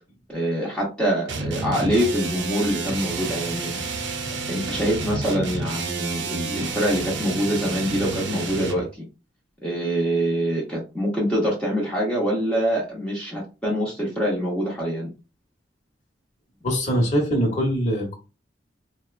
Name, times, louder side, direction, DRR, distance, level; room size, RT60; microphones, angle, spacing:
voice 1, 0.3-3.7 4.5-9.0 9.6-15.1, equal, 5° left, 0.8 m, -25 dB
sound 1, 1.3-8.9, right 3 dB, 75° right, 0.7 m, -30 dB
voice 2, 16.6-18.1, equal, 35° left, 1.0 m, -22 dB
4.1 x 2.2 x 2.4 m
head